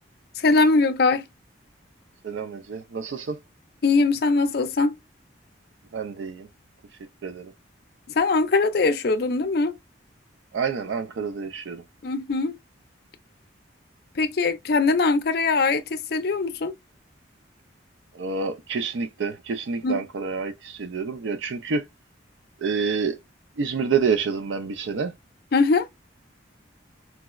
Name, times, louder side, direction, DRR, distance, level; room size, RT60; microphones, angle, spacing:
voice 1, 0.4-1.3 3.8-5.0 8.1-9.8 12.0-12.6 14.2-16.7 19.8-20.0 25.5-25.9, left 3 dB, 55° left, 0.4 m, -21 dB
voice 2, 2.2-3.4 5.9-6.5 7.2-7.5 10.5-11.8 18.1-21.9 22.6-23.2 23.6-25.1, right 5 dB, 75° right, 0.4 m, -28 dB
4.5 x 2.0 x 2.2 m
head